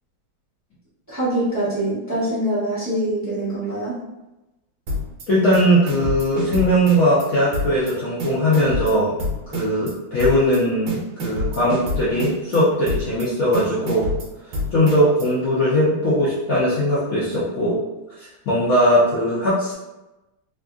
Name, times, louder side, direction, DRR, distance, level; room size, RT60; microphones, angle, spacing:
voice 1, 1.1-4.0, right 1 dB, 15° right, -11 dB, 0.7 m, -24 dB
sound 1, 4.9-5.2 5.5-7.3 7.5-7.9 8.2-9.9 10.2-10.6 10.9-12.6 12.9-13.3 13.5-15.3, left 1 dB, 80° right, 1.4 m, -27 dB
voice 2, 5.3-9.1 9.5-14.1 14.7-17.8 18.5-19.7, equal, 65° left, -8 dB, 0.9 m, -19 dB
3.4 x 2.5 x 2.3 m, 0.99 s
omnidirectional pair, 2.1 m